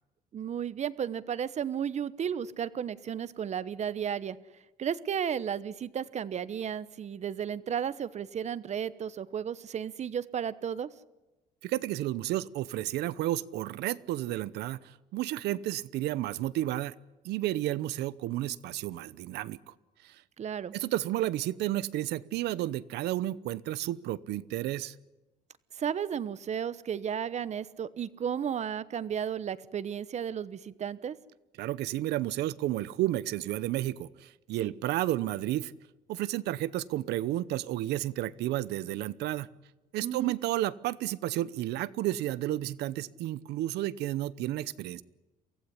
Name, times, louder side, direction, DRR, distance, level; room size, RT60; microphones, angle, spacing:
voice 1, 0.3-4.4 4.8-10.9 20.4-20.7 25.8-31.2 34.6-34.7 40.0-40.3, right 8 dB, 40° right, 16 dB, 1.0 m, -33 dB
voice 2, 11.6-16.9 17.2-19.7 20.0-20.2 20.7-24.9 31.6-35.7 36.1-39.5 39.9-45.0, right 14 dB, 80° right, 18 dB, 0.9 m, -32 dB
24.0 x 15.5 x 10.0 m, 1.1 s
cardioid pair, 110°, 17 cm